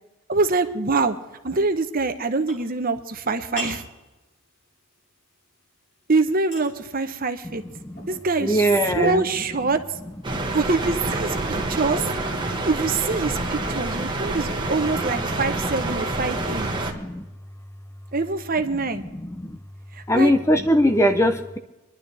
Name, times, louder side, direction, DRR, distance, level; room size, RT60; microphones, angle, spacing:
voice 1, 0.3-1.2 1.4-3.8 6.1-7.6 8.1-9.8 10.5-12.0 12.6-16.7 18.1-19.0 19.9-20.3, right 3 dB, 40° right, 8 dB, 1.0 m, -24 dB
sound 1, 1.0-10.5, equal, 40° left, 4.1 m, -44 dB
voice 2, 8.4-9.2 12.5-12.6 14.0-14.4 16.7-17.2 19.1-19.6 20.1-21.6, equal, 15° left, 8 dB, 0.6 m, -21 dB
sound 2, 10.2-16.9, right 2 dB, 20° right, 1.5 m, -27 dB
24.5 x 11.5 x 3.4 m, 1.0 s
head